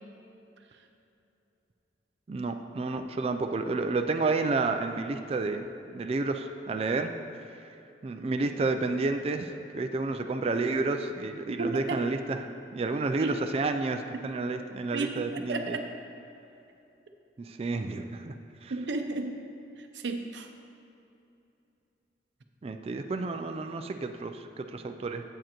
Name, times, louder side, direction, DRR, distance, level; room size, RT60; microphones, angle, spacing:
voice 1, 2.3-7.1 8.0-15.8 17.4-18.3 18.6-18.7 22.6-25.2, right 3 dB, 35° right, 6 dB, 0.3 m, -30 dB
voice 2, 11.5-12.0 13.2-13.3 14.9-15.8 18.7-19.4 19.8-20.5, right 3 dB, 80° right, 5 dB, 0.6 m, -33 dB
8.9 x 7.6 x 2.9 m, 2.9 s
head